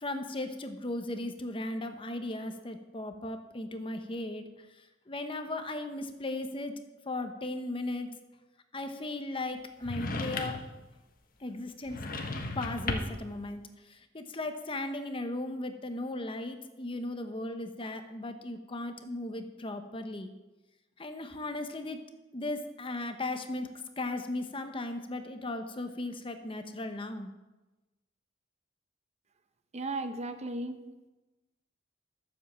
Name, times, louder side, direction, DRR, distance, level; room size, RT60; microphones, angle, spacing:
voice 1, 0.0-4.4 5.1-6.7 7.1-8.1 8.7-10.6 11.4-12.0 12.5-20.3 21.0-22.0 22.3-23.7 24.0-27.3, left 2 dB, 30° left, 7 dB, 0.9 m, -36 dB
sound 1, 9.8-10.8 11.8-13.3, left 2 dB, 50° left, 1.4 m, -35 dB
voice 2, 29.7-30.8, right 2 dB, 35° right, 9 dB, 1.0 m, -35 dB
12.5 x 7.4 x 7.4 m, 1.1 s
head